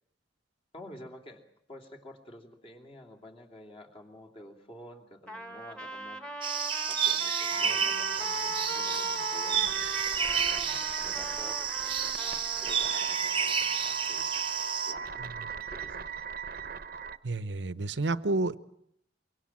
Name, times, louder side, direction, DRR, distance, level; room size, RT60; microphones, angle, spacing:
voice 1, 0.7-1.4 1.7-6.2 6.9-9.7 10.4-14.3 14.8-16.1, left 1 dB, 30° left, 2.8 m, -50 dB
Trumpet, 5.3-13.1, equal, 5° left, 1.6 m, -40 dB
sound 1, 6.4-14.9, right 7 dB, 30° right, 0.9 m, -30 dB
sound 2, 7.5-17.2, right 5 dB, 55° right, 0.9 m, -38 dB
voice 2, 17.2-18.6, right 2 dB, 80° right, 0.9 m, -30 dB
24.5 x 23.5 x 7.4 m
head